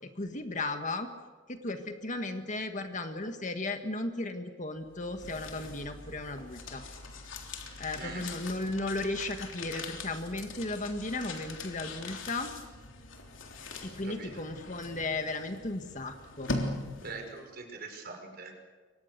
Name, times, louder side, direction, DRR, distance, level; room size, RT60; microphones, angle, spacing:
voice 1, 0.0-1.1 1.5-6.8 7.8-12.5 13.8-16.5, left 2 dB, 35° left, 6 dB, 1.7 m, -35 dB
sound 1, 4.8-17.4, left 2 dB, 65° left, 3.6 m, -42 dB
voice 2, 8.0-8.3 14.0-14.3 17.0-18.5, right 4 dB, 45° right, 3 dB, 5.6 m, -42 dB
29.5 x 24.5 x 6.8 m, 1.4 s
head